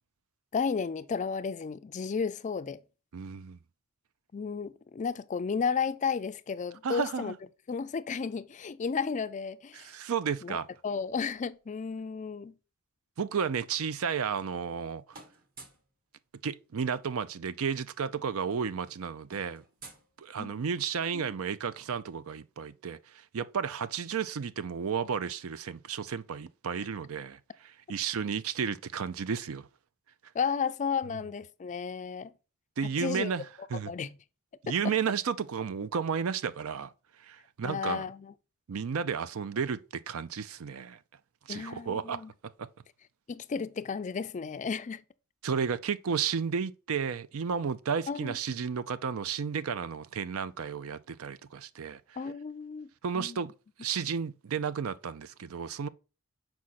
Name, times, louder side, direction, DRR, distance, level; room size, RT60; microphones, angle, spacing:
voice 1, 0.5-2.8 4.3-7.3 7.7-9.9 10.4-10.6 10.8-12.6 20.4-20.5 21.1-21.3 30.3-32.3 32.8-33.3 33.9-34.2 34.8-34.9 37.6-38.3 41.5-42.3 43.3-45.0 48.1-48.4 52.2-53.4, left 6 dB, 35° left, 0.4 m, -33 dB
voice 2, 3.1-3.6 6.8-7.4 9.7-10.7 13.2-15.0 16.4-19.6 20.2-29.7 32.8-33.4 33.7-33.9 34.6-36.9 37.2-38.0 38.7-41.0 41.5-42.2 42.6-42.7 45.4-52.0 53.0-53.5 53.8-55.9, right 6 dB, 70° right, 0.5 m, -33 dB
sound 1, 14.5-14.8 15.1-15.9 17.3-17.4 17.6-17.8 18.1-20.8, right 3 dB, 40° right, 1.4 m, -53 dB
6.2 x 4.7 x 4.1 m
head